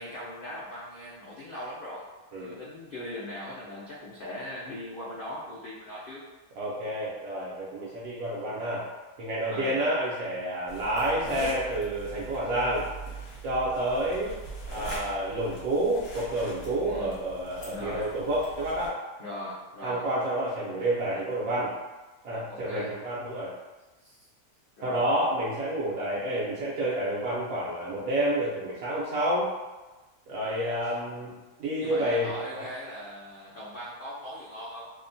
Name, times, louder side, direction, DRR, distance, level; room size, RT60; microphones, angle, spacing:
voice 1, 0.0-2.0 2.4-6.2 9.5-9.8 16.8-17.2 17.7-18.1 19.2-20.0 22.5-22.9 24.0-24.3 24.8-25.1 30.8-30.9 31.8-34.9, left 1 dB, 80° left, -8 dB, 0.4 m, -40 dB
voice 2, 6.6-8.9 9.2-12.9 13.4-14.4 14.7-19.0 19.8-21.7 22.2-23.5 24.8-29.5 30.3-32.7, right 1 dB, 75° right, -7 dB, 1.0 m, -29 dB
sound 1, 10.7-18.9, right 1 dB, 60° left, 0.9 m, -42 dB
2.7 x 2.1 x 2.5 m, 1.2 s
omnidirectional pair, 1.6 m